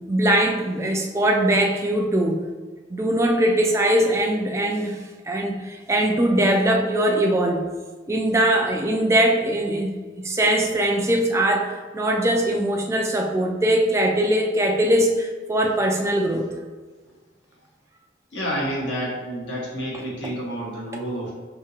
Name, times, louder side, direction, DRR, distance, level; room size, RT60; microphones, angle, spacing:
voice 1, 0.0-2.4 2.9-5.0 5.3-7.6 8.1-16.5, right 1 dB, 15° right, 2 dB, 0.3 m, -21 dB
voice 2, 18.3-21.3, equal, 70° left, -5 dB, 1.3 m, -29 dB
4.7 x 2.8 x 2.8 m, 1.4 s
head